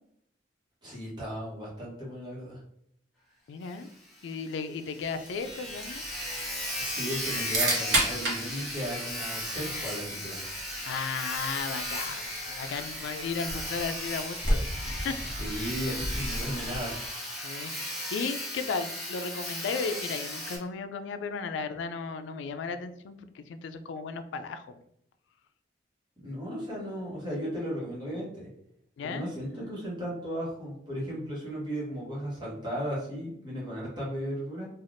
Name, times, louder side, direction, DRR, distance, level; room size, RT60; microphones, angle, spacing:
voice 1, 0.8-2.6 6.8-10.5 15.4-17.0 26.2-28.5 29.0-34.7, equal, 25° right, -6 dB, 1.1 m, -35 dB
voice 2, 3.5-3.9 4.2-6.0 10.9-15.2 17.4-24.8 29.0-29.3, left 5 dB, 80° left, 10 dB, 0.3 m, -35 dB
Sawing, 3.7-3.8 4.1-4.2 4.6-4.7 4.8-20.6, left 1 dB, ahead, 1.2 m, -36 dB
sound 1, 5.1-17.1, right 1 dB, 80° right, 0.9 m, -35 dB
3.3 x 2.3 x 2.5 m, 0.73 s
head